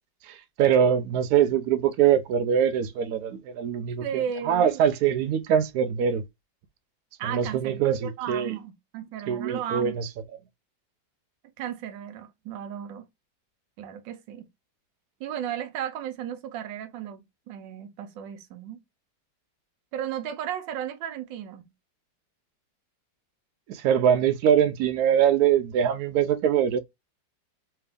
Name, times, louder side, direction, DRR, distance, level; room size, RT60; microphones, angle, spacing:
voice 1, 0.2-6.2 7.3-8.5 9.3-10.1 23.7-26.8, right 8 dB, 70° right, 0.9 m, -23 dB
voice 2, 4.0-4.8 7.2-10.0 11.6-13.1 13.8-14.5 15.2-18.8 19.9-21.6, right 9 dB, 90° right, 1.4 m, -35 dB
3.4 x 2.8 x 3.4 m
omnidirectional pair, 2.0 m